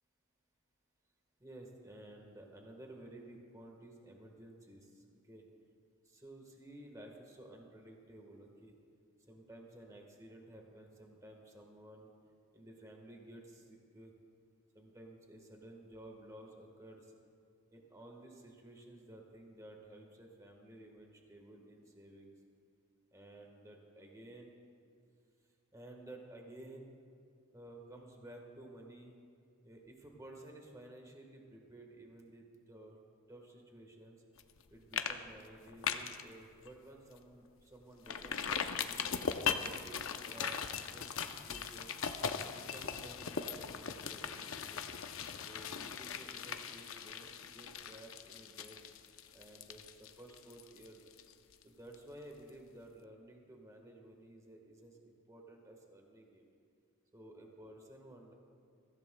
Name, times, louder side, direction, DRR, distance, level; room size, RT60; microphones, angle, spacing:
voice 1, 1.4-5.4 6.0-8.7 9.2-12.1 12.5-14.1 14.7-17.1 17.7-22.3 23.1-24.5 25.4-26.9 27.5-29.2 29.6-33.0 33.3-34.2 34.7-39.1 39.6-41.9 42.4-44.8 45.4-48.8 49.3-51.0 51.6-56.4 57.1-58.3, right 1 dB, 15° right, 1 dB, 1.4 m, -54 dB
sound 1, 34.4-34.6 34.9-35.1 35.4-36.2 36.7-36.8 37.2-37.3 38.1-51.6 51.9-52.0, left 7 dB, 65° left, 0.6 m, -39 dB
22.5 x 15.0 x 2.3 m, 2.3 s
head